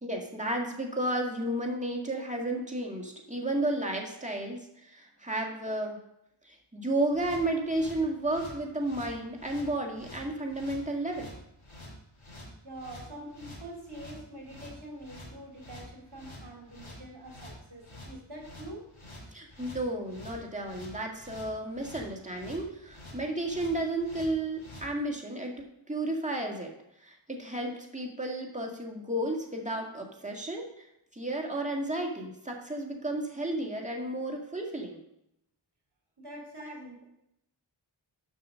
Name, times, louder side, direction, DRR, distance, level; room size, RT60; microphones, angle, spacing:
voice 1, 0.0-6.0 6.4-11.3 19.3-26.7 27.0-30.8 31.1-35.0, right 1 dB, 15° right, 0 dB, 1.9 m, -32 dB
sound 1, 7.1-24.9, left 1 dB, 85° left, 2.3 m, -48 dB
voice 2, 12.6-18.9 36.2-37.0, right 1 dB, 55° right, -1 dB, 2.8 m, -45 dB
7.2 x 6.0 x 6.3 m, 0.81 s
wide cardioid pair, 50°, 47 cm